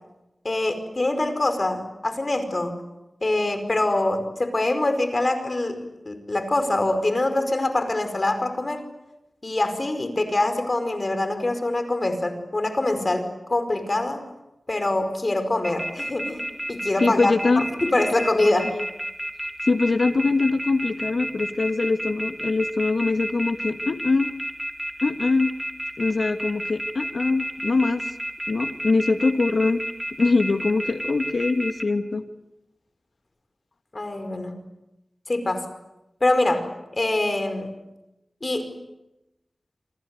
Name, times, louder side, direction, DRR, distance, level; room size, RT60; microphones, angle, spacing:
voice 1, 0.4-2.8 3.2-8.9 9.4-14.2 14.7-17.3 17.8-18.8 33.9-34.6 35.3-35.7 36.2-37.7 38.4-38.8, left 2 dB, 40° left, 9 dB, 5.1 m, -24 dB
sound 1, 15.6-31.8, equal, 10° right, 3.8 m, -30 dB
voice 2, 17.0-17.7 19.6-24.3 25.0-25.5 26.0-28.1 28.5-29.8 30.2-32.2, left 3 dB, 75° left, 8 dB, 1.7 m, -23 dB
27.5 x 27.0 x 7.9 m, 0.95 s
wide cardioid pair, 65°, 0 cm